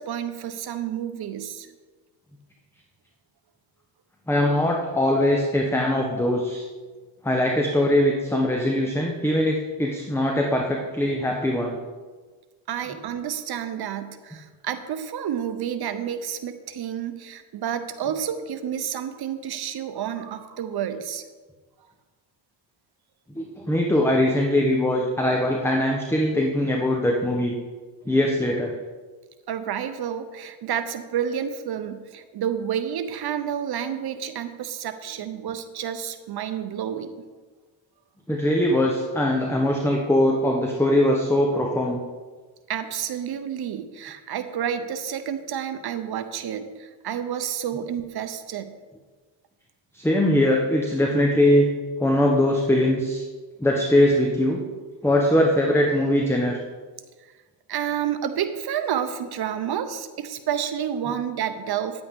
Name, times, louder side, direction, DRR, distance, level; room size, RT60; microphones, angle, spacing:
voice 1, 0.0-1.7 12.7-21.2 29.5-37.2 42.7-48.7 57.7-62.0, right 9 dB, 50° right, 10 dB, 0.9 m, -30 dB
voice 2, 4.3-6.7 7.2-11.8 23.3-27.5 28.1-28.7 38.3-42.0 49.9-51.7 52.0-53.2 53.6-54.6 55.0-56.6, left 1 dB, 5° left, 1 dB, 1.0 m, -21 dB
9.9 x 8.5 x 3.7 m, 1.4 s
cardioid pair, 95°, 48 cm